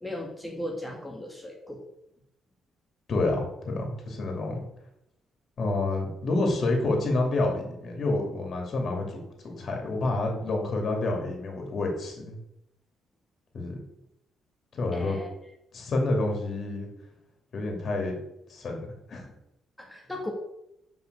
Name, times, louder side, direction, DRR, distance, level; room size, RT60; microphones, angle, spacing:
voice 1, 0.0-1.8 14.9-15.3 19.8-20.3, left 1 dB, 10° left, 0 dB, 1.7 m, -37 dB
voice 2, 3.1-4.6 5.6-12.4 13.5-13.8 14.7-15.2 15.7-16.9 17.5-18.2 18.5-19.3, left 2 dB, 50° left, 2 dB, 2.6 m, -28 dB
5.9 x 5.4 x 6.9 m, 0.82 s
cardioid pair, 90°, 0 cm